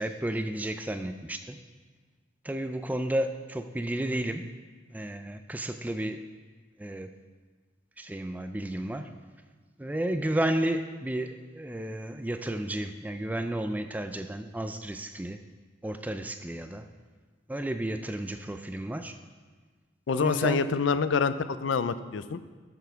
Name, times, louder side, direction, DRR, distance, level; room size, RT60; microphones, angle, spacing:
voice 1, 0.0-1.6 2.4-4.5 4.9-6.3 6.8-7.2 8.0-9.1 9.8-15.4 15.8-16.9 17.5-19.1 20.1-20.6, right 1 dB, 10° right, 8 dB, 0.3 m, -32 dB
voice 2, 20.1-22.4, left 5 dB, 75° left, 13 dB, 0.4 m, -26 dB
7.7 x 7.1 x 5.7 m, 1.4 s
head